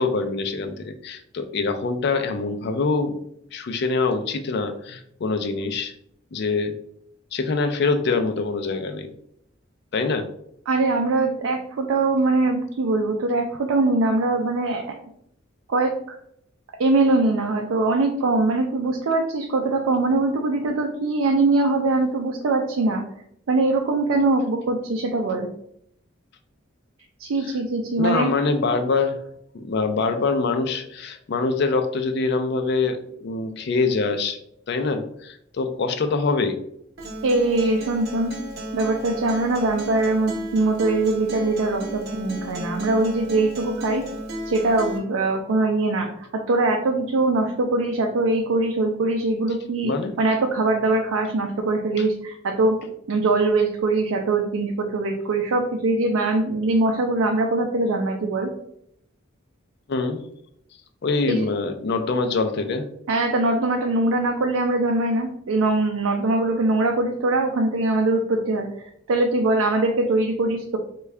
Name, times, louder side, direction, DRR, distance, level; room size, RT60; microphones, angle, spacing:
voice 1, 0.0-3.1 3.5-5.9 6.3-6.7 7.3-9.1 9.9-10.3 27.4-27.5 28.0-29.2 29.5-34.4 34.7-36.6 49.8-50.1 52.0-52.1 59.9-60.2 61.0-62.9, left 4 dB, 55° left, 7 dB, 0.4 m, -24 dB
voice 2, 10.7-14.8 15.7-16.2 16.8-23.0 23.5-25.5 27.2-28.3 28.7-28.8 37.2-38.3 38.7-44.0 44.4-49.9 50.2-52.8 53.1-58.5 61.3-61.4 63.1-70.8, right 2 dB, 85° right, 2 dB, 0.4 m, -22 dB
Acoustic guitar, 37.0-45.0, right 1 dB, 55° right, 0.7 m, -33 dB
3.5 x 2.3 x 3.2 m, 0.72 s
head